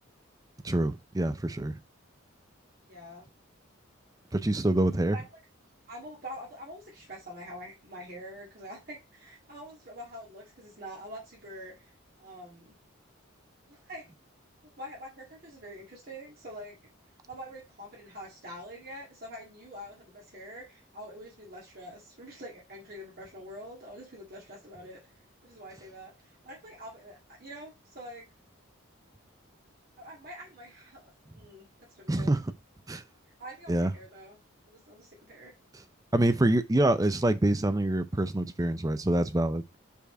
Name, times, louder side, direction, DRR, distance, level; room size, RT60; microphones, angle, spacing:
voice 1, 0.6-1.8 4.3-5.2 32.1-32.4 32.9-33.0 33.7-33.9 36.1-39.8, right 1 dB, 15° right, 0.5 m, -26 dB
voice 2, 2.9-3.3 5.1-5.2 5.9-11.9 12.2-12.7 13.7-14.0 14.8-16.8 17.3-25.0 25.4-28.3 30.0-32.3 33.4-34.4 34.7-35.5, equal, 45° right, 2.0 m, -45 dB
5.5 x 4.4 x 4.3 m
head